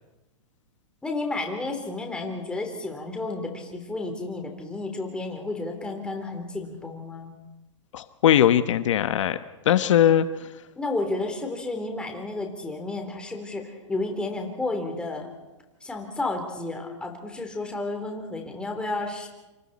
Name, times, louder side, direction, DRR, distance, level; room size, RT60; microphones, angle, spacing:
voice 1, 1.0-7.3 10.8-15.3 15.8-19.3, left 2 dB, 5° left, 3 dB, 3.5 m, -32 dB
voice 2, 7.9-9.4 9.6-10.3, left 11 dB, 70° left, 10 dB, 1.1 m, -20 dB
27.5 x 27.0 x 4.3 m, 1.0 s
hypercardioid pair, 145°, 16 cm